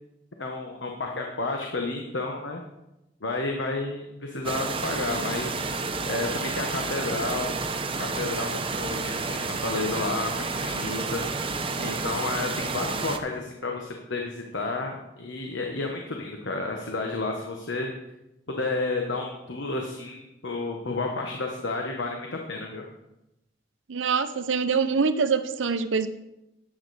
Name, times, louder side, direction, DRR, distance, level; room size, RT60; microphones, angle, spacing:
voice 1, 0.4-2.6 3.2-5.6 6.1-7.5 8.0-11.2 11.8-17.9 18.5-22.8, left 3 dB, 80° left, 2 dB, 1.2 m, -31 dB
sound 1, 4.4-13.2, right 4 dB, 30° right, 0.7 m, -30 dB
voice 2, 23.9-26.1, right 5 dB, 85° right, 12 dB, 0.6 m, -24 dB
11.0 x 8.6 x 4.2 m, 0.91 s
head